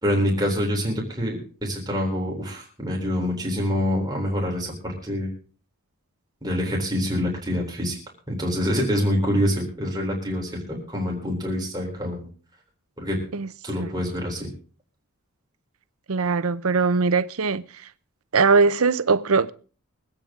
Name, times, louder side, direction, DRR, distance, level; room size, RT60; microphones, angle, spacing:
voice 1, 0.0-5.3 6.4-8.0 8.3-12.3 13.0-13.2 13.6-14.5, equal, 20° right, 3.8 m, -26 dB
voice 2, 16.1-17.6 18.3-19.5, right 4 dB, 70° right, 0.7 m, -20 dB
24.0 x 8.8 x 3.7 m
head